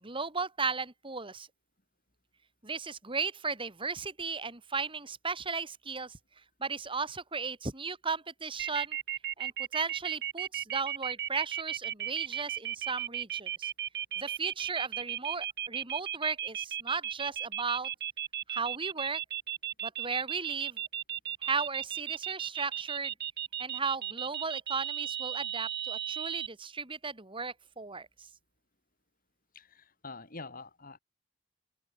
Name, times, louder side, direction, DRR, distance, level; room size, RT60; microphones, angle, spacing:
voice 1, 0.0-1.5 2.6-6.2 6.6-9.0 9.4-13.7 14.2-17.9 18.5-19.2 19.8-20.8 21.4-23.1 23.6-28.1, right 4 dB, 25° right, 2.7 m, -35 dB
sound 1, 8.6-26.5, right 11 dB, 55° right, 5.4 m, -35 dB
voice 2, 29.5-31.0, left 3 dB, 40° left, 5.5 m, -46 dB
head